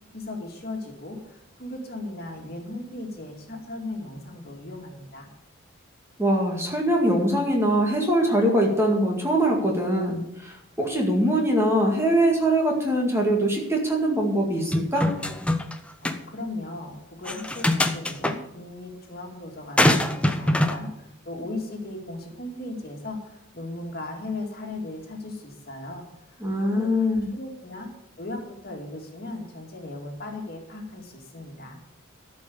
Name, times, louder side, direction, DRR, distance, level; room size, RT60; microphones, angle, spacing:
voice 1, 0.1-5.3 16.0-27.9 28.2-31.8, left 2 dB, 45° left, 2 dB, 2.2 m, -36 dB
voice 2, 6.2-15.1 26.4-27.3, right 1 dB, 10° right, 0 dB, 2.0 m, -23 dB
sound 1, 14.7-15.7 16.0-16.2 17.2-18.3 19.8-20.8, left 1 dB, 5° left, 0.6 m, -23 dB
13.0 x 5.5 x 8.5 m, 0.84 s
head